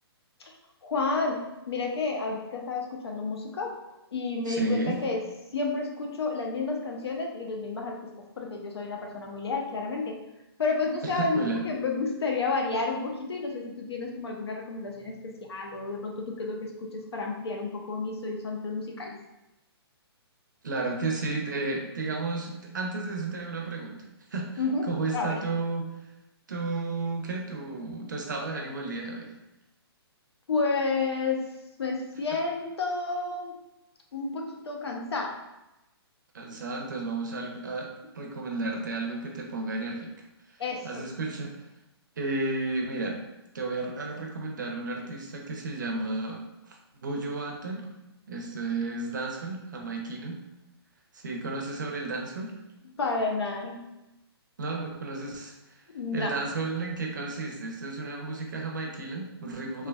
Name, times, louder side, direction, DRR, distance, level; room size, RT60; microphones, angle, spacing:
voice 1, 0.8-3.8 4.1-5.2 5.5-8.1 8.4-10.2 10.6-19.1 24.6-24.9 25.1-25.4 30.5-31.5 31.8-33.6 34.1-35.4 40.6-41.0 53.0-53.8 55.9-56.4 59.8-59.9, left 3 dB, 75° left, 1 dB, 0.7 m, -31 dB
voice 2, 4.5-5.0 11.1-11.6 20.6-24.0 24.3-25.9 26.5-29.3 36.3-37.9 38.1-40.1 40.8-41.5 42.2-43.2 43.5-46.4 46.7-47.9 48.3-50.4 51.1-52.6 54.6-55.5 56.1-59.9, right 3 dB, 45° right, 1 dB, 0.6 m, -32 dB
3.2 x 3.0 x 2.3 m, 0.95 s
hypercardioid pair, 180°, 14 cm